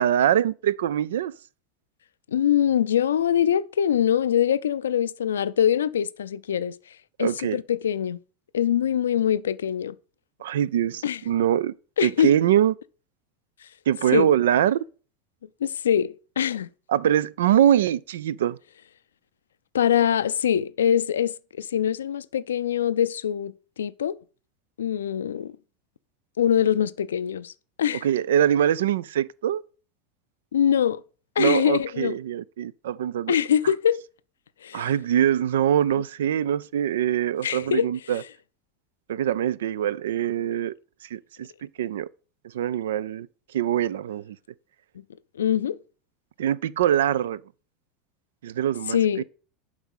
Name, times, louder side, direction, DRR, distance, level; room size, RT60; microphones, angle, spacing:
voice 1, 0.0-1.3 7.2-7.6 10.4-11.7 12.0-12.7 13.9-14.8 16.9-18.6 28.0-29.6 31.4-33.4 34.7-38.2 39.1-40.7 41.1-41.5 41.8-42.1 42.5-43.3 43.5-44.4 46.4-47.4 48.4-49.0, right 10 dB, 80° right, 0.3 m, -23 dB
voice 2, 2.3-6.7 7.2-8.2 8.5-10.0 11.0-11.2 12.0-12.3 14.1-14.3 15.6-16.7 19.7-24.2 24.8-25.5 26.4-27.5 27.8-28.1 30.5-31.0 31.4-32.1 33.3-34.0 34.6-34.9 37.4-38.2 45.3-45.8 48.9-49.2, left 9 dB, 85° left, 0.3 m, -23 dB
7.2 x 4.8 x 5.5 m
hypercardioid pair, 90°, 0 cm